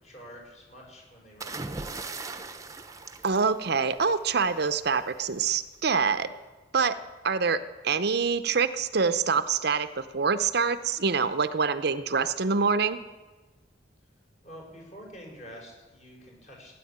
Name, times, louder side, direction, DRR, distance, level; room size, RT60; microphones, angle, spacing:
voice 1, 0.0-2.2 14.4-16.7, equal, 40° left, -1 dB, 6.0 m, -47 dB
sound 1, 1.4-4.2 5.4-5.7, right 3 dB, 20° right, 0.9 m, -39 dB
voice 2, 3.2-6.3 6.7-7.0 7.2-13.0, right 5 dB, 60° right, 11 dB, 0.7 m, -25 dB
16.0 x 10.0 x 8.8 m, 1.2 s
head